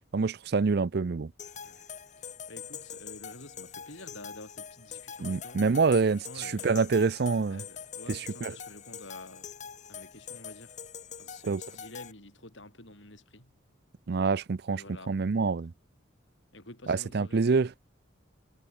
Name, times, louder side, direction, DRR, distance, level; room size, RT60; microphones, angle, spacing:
voice 1, 0.1-1.3 5.2-7.6 8.1-8.6 11.4-11.6 14.1-15.7 16.9-17.9, right 4 dB, 55° right, 0.5 m, -27 dB
sound 1, 1.4-12.1, left 7 dB, 35° left, 1.4 m, -44 dB
voice 2, 2.2-5.6 6.1-6.8 7.5-9.5 9.9-10.8 11.2-13.5 14.7-15.2 16.5-17.5, left 2 dB, 70° left, 6.8 m, -49 dB
head